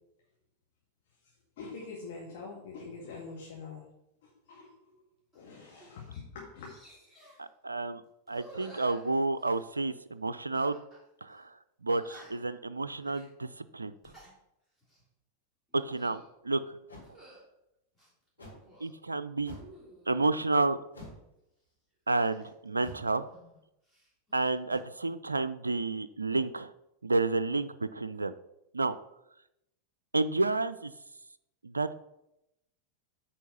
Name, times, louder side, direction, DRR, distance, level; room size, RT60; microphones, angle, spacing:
voice 1, 1.6-3.8 4.2-4.7 5.3-6.7, left 4 dB, 50° left, -3 dB, 1.9 m, -44 dB
sound 1, 5.3-5.5 5.8-6.2 6.6-7.4 8.2-9.8 10.5-11.0 11.3-11.4 11.9-12.5 13.0-13.3 13.9-14.3 14.8-15.1 15.7-16.3 17.0-17.4 17.9-18.9 19.4-20.4 22.2-23.6 23.8-24.5, right 1 dB, 5° left, 3.4 m, -55 dB
voice 2, 7.4-8.0 8.3-10.8 11.2-11.5 11.8-13.9 15.7-16.8 18.8-19.6 20.1-20.8 22.1-23.3 24.3-26.7 27.0-28.3 28.7-28.9 30.1-30.9 31.6-31.9, right 3 dB, 80° right, 12 dB, 0.3 m, -30 dB
sound 2, 16.9-17.1 18.4-18.7 19.4-19.8 20.9-21.3 22.8-23.1 24.7-24.8, left 1 dB, 85° left, 3.0 m, -47 dB
9.1 x 4.4 x 5.5 m, 0.86 s
figure-of-eight pair, 90°, 0 cm